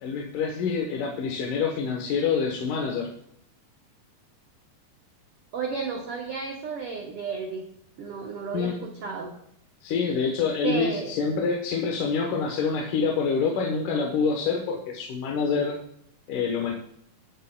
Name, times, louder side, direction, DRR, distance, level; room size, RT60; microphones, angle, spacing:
voice 1, 0.0-3.1 8.5-8.8 9.8-15.7 16.3-16.7, left 5 dB, 70° left, 0 dB, 2.5 m, -26 dB
voice 2, 5.5-7.6 8.0-9.3 10.6-11.1, right 5 dB, 85° right, 1 dB, 1.3 m, -32 dB
19.0 x 8.3 x 2.2 m, 0.71 s
omnidirectional pair, 4.1 m